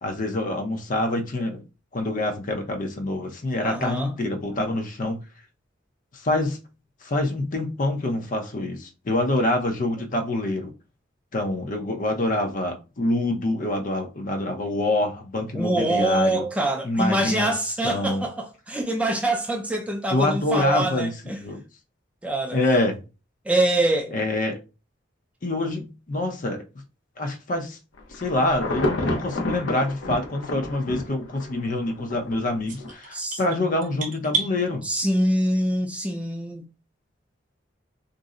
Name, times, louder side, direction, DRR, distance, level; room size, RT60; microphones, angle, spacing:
voice 1, 0.0-1.6 1.9-5.2 6.1-6.6 7.0-10.7 11.3-16.4 16.8-17.5 17.8-18.2 20.1-21.1 21.4-21.6 22.5-23.0 24.1-24.6 25.4-26.6 27.2-27.8 28.1-34.9, left 2 dB, 45° left, 0.6 m, -26 dB
voice 2, 3.6-4.2 15.5-21.4 22.2-22.6 23.4-24.1 33.1-33.4 34.8-36.7, right 1 dB, 5° right, 0.4 m, -24 dB
Insect / Thunder / Rain, 28.0-32.3 32.8-32.9, left 2 dB, 85° left, 0.7 m, -29 dB
sound 1, 32.7-34.5, right 5 dB, 45° right, 0.7 m, -30 dB
2.6 x 2.0 x 3.7 m
head